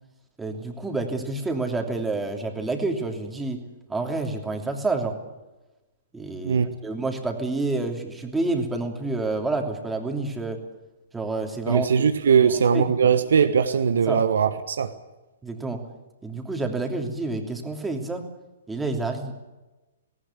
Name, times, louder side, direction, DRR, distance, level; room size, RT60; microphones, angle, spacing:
voice 1, 0.4-3.6 3.9-5.2 6.1-10.6 11.1-12.1 12.4-13.1 14.1-14.2 15.4-15.8 16.2-18.2 18.7-19.3, right 3 dB, 10° right, 3 dB, 3.0 m, -28 dB
voice 2, 11.7-14.9, right 6 dB, 60° right, 9 dB, 1.2 m, -20 dB
18.5 x 18.5 x 9.7 m, 1.1 s
figure-of-eight pair, 115°, 0 cm